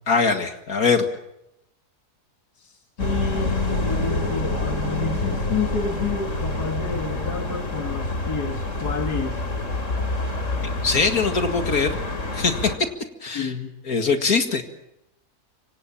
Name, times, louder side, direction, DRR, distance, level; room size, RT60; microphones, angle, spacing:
voice 1, 0.1-1.1 10.6-12.0 12.3-12.5 13.2-13.5 13.9-14.6, left 4 dB, 70° left, 7 dB, 2.4 m, -22 dB
voice 2, 2.5-9.4 13.3-13.7, left 5 dB, 85° left, 5 dB, 2.5 m, -30 dB
sound 1, 3.0-12.8, left 2 dB, 50° left, 3.5 m, -27 dB
27.0 x 25.5 x 7.3 m, 0.84 s
omnidirectional pair, 1.6 m